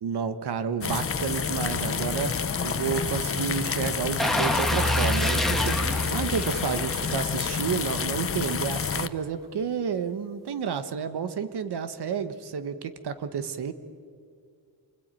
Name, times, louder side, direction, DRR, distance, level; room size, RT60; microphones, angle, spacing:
voice 1, 0.0-13.7, right 7 dB, 90° right, 11 dB, 1.4 m, -31 dB
sound 1, 0.8-9.1, left 6 dB, 35° left, 0.8 m, -29 dB
sound 2, 4.2-7.1 7.6-7.7, equal, ahead, 1.9 m, -27 dB
27.0 x 21.0 x 9.1 m, 2.2 s
wide cardioid pair, 145°, 38 cm